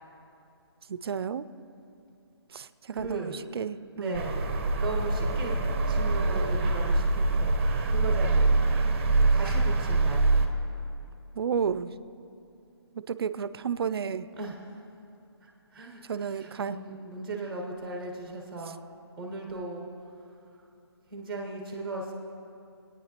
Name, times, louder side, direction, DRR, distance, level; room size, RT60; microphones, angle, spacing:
voice 1, 0.9-1.5 2.5-4.2 11.3-11.9 12.9-14.3 16.0-16.8, right 7 dB, 65° right, 14 dB, 0.4 m, -32 dB
voice 2, 2.9-3.4 4.0-7.5 7.9-8.5 9.3-10.3 14.4-14.8 15.4-18.8 19.2-19.9 21.1-22.1, right 3 dB, 5° right, 0 dB, 1.1 m, -37 dB
sound 1, 4.1-10.5, right 2 dB, 30° right, 0.7 m, -24 dB
22.0 x 9.2 x 2.9 m, 2.7 s
hypercardioid pair, 170°, 14 cm